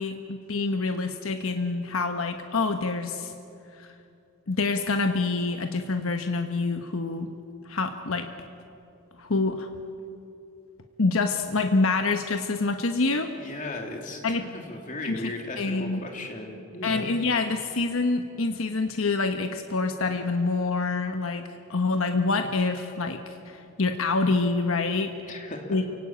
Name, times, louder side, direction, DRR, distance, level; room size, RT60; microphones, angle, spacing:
voice 1, 0.0-3.3 3.8-3.9 4.5-7.3 7.7-8.3 9.2-9.7 11.0-13.3 14.2-14.4 15.0-15.3 15.6-16.0 16.8-25.1 25.7-25.9, left 3 dB, 70° left, 6 dB, 1.2 m, -26 dB
voice 2, 13.4-17.1 25.3-25.8, left 2 dB, 35° left, 2 dB, 3.1 m, -36 dB
28.5 x 17.5 x 8.8 m, 2.7 s
head